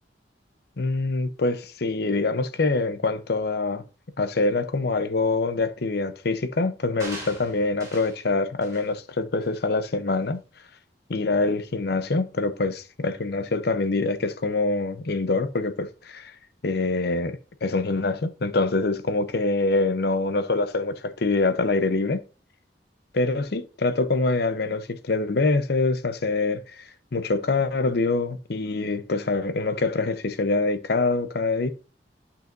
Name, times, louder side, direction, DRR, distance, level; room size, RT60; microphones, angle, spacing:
voice 1, 0.8-3.8 4.2-10.4 11.1-16.3 16.6-22.2 23.1-31.7, left 3 dB, 60° left, 0.7 m, -25 dB
sound 1, 7.0-8.2 8.6-8.9 9.4-9.6, right 2 dB, 20° right, 2.9 m, -41 dB
9.2 x 5.6 x 2.6 m
head